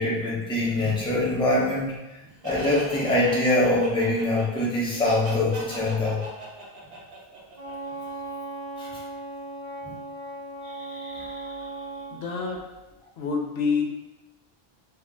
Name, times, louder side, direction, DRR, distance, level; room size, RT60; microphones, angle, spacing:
voice 1, 0.0-2.0 2.4-6.2 8.8-8.9 9.8-10.0 10.8-11.5, left 1 dB, 5° left, -6 dB, 0.5 m, -24 dB
Laughter, 2.4-8.1, right 1 dB, 70° right, 0.9 m, -40 dB
Wind instrument woodwind instrument, 7.5-12.1, right 2 dB, 40° right, 0.7 m, -37 dB
voice 2, 12.1-12.7 13.2-13.8, left 5 dB, 85° left, 1 dB, 0.8 m, -27 dB
2.4 x 2.1 x 3.7 m, 1.0 s
omnidirectional pair, 1.0 m